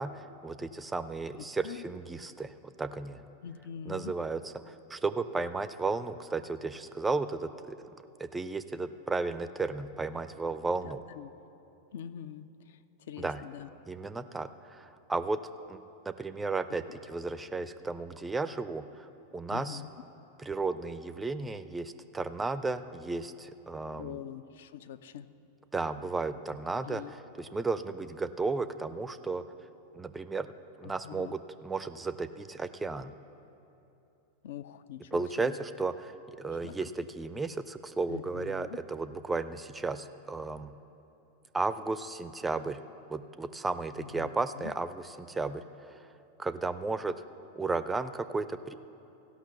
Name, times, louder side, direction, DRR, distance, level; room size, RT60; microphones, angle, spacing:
voice 1, 0.0-2.5 2.8-3.2 3.9-7.9 8.2-11.0 13.2-13.4 13.9-15.4 15.7-15.8 16.1-19.1 19.3-19.8 20.4-24.2 25.7-29.4 29.9-30.5 30.8-33.1 35.1-36.1 36.4-40.7 41.5-42.8 43.1-45.6 46.4-47.2 47.6-48.7, right 3 dB, 10° right, 13 dB, 0.4 m, -34 dB
voice 2, 1.4-1.8 3.4-4.1 10.8-11.3 11.9-12.5 13.1-13.7 19.5-19.9 24.0-25.3 26.9-27.1 30.8-31.4 34.4-35.6 36.6-36.8 38.1-38.8 44.0-44.3 44.6-44.7, left 9 dB, 60° left, 13 dB, 0.4 m, -43 dB
15.5 x 5.8 x 6.9 m, 2.9 s
figure-of-eight pair, 90°, 0 cm